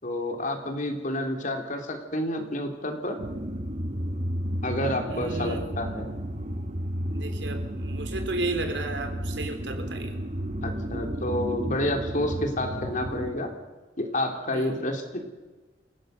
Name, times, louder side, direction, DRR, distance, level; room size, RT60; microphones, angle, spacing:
voice 1, 0.0-3.2 4.6-6.2 10.6-13.5 14.0-15.0, left 1 dB, 45° left, 4 dB, 3.6 m, -29 dB
sound 1, 3.2-13.3, equal, 40° right, 1.9 m, -32 dB
voice 2, 5.1-5.7 7.1-10.2 14.5-14.8, right 2 dB, 85° right, 6 dB, 3.6 m, -33 dB
28.0 x 17.0 x 6.7 m, 1.2 s
head